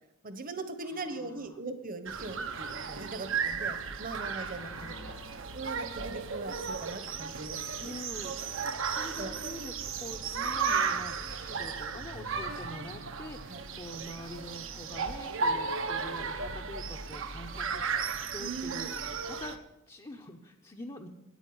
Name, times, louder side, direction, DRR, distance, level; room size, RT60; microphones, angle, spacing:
voice 1, 0.2-5.0 5.5-7.9 9.2-9.4 13.5-13.6 18.4-18.8, right 3 dB, 40° right, 10 dB, 1.2 m, -40 dB
voice 2, 0.8-1.6 4.6-5.4 7.8-8.4 8.7-18.9 19.3-21.1, left 1 dB, 25° left, 0 dB, 0.8 m, -45 dB
sound 1, 2.1-19.6, right 5 dB, 60° right, 1.0 m, -35 dB
9.5 x 9.2 x 9.7 m, 0.91 s
head